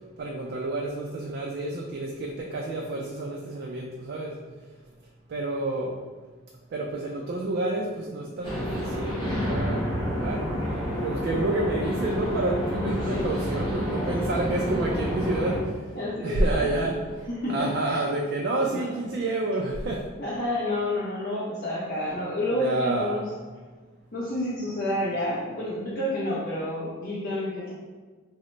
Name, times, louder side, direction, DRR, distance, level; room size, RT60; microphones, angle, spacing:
voice 1, 0.2-4.4 5.3-6.0 6.7-10.4 11.0-16.0 16.2-17.0 17.5-20.1 22.6-23.2, right 2 dB, 50° right, -1 dB, 0.3 m, -29 dB
sound 1, 8.4-15.6, equal, 25° left, 1.0 m, -29 dB
voice 2, 12.7-13.2 13.9-14.2 15.9-17.0 17.3-18.0 18.6-18.9 20.2-23.3 24.1-27.7, left 1 dB, 45° left, -8 dB, 0.6 m, -30 dB
3.7 x 2.0 x 3.1 m, 1.4 s
head